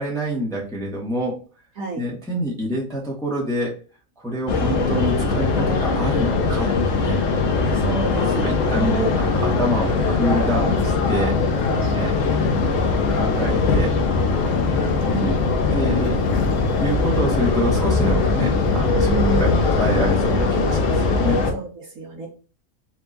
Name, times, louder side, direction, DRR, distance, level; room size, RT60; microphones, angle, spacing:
voice 1, 0.0-1.4 2.0-3.7 4.2-7.2 8.2-11.3 11.9-12.1 13.1-13.9 15.0-15.4 15.7-16.2 16.8-21.4, equal, 5° left, -3 dB, 0.8 m, -27 dB
sound 1, 4.5-21.5, left 3 dB, 65° left, 1.0 m, -20 dB
voice 2, 7.7-9.2 11.7-12.3 14.4-14.6 19.0-19.7 21.5-22.3, right 3 dB, 70° right, -5 dB, 1.4 m, -29 dB
4.4 x 2.3 x 3.8 m, 0.37 s
omnidirectional pair, 1.5 m